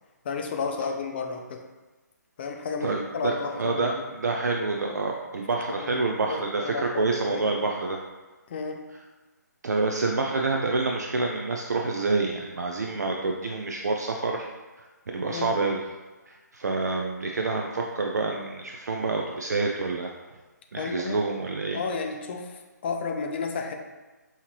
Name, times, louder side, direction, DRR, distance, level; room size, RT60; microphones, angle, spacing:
voice 1, 0.2-1.6 2.4-3.9 5.7-7.5 8.5-8.8 15.3-15.5 20.8-21.2 21.7-23.7, left 5 dB, 35° left, 3 dB, 0.5 m, -32 dB
voice 2, 2.8-8.0 9.6-14.5 14.8-14.9 15.1-15.8 16.3-20.1 20.7-21.8, right 3 dB, 65° right, 1 dB, 0.4 m, -27 dB
5.6 x 2.9 x 3.1 m, 1.2 s
figure-of-eight pair, 140°, 10 cm